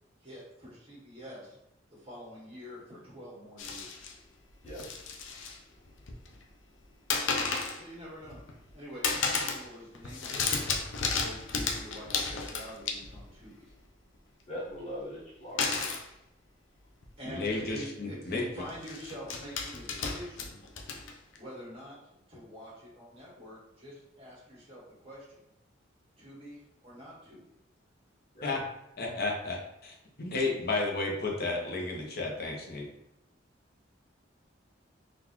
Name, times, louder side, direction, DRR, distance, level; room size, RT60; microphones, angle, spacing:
voice 1, 0.2-1.6 1.9-4.1 7.7-8.4 8.7-10.4 11.1-13.6 17.2-20.6 21.3-22.0 22.3-25.4 26.2-27.4, equal, 30° right, -8 dB, 1.4 m, -46 dB
sound 1, 3.6-4.1 4.6-5.6 5.9-6.4 7.1-7.8 8.2-8.7 9.0-9.7 9.9-13.3 15.6-16.1 17.0-17.1 17.4-17.6 18.7-21.4, left 4 dB, 80° left, 0.5 m, -33 dB
voice 2, 14.5-15.7 28.3-28.6, equal, 35° left, -7 dB, 1.2 m, -40 dB
voice 3, 17.2-18.4 28.4-28.6 29.0-29.6 30.2-32.9, left 3 dB, 55° left, -1 dB, 0.8 m, -32 dB
3.9 x 2.5 x 2.9 m, 0.84 s
head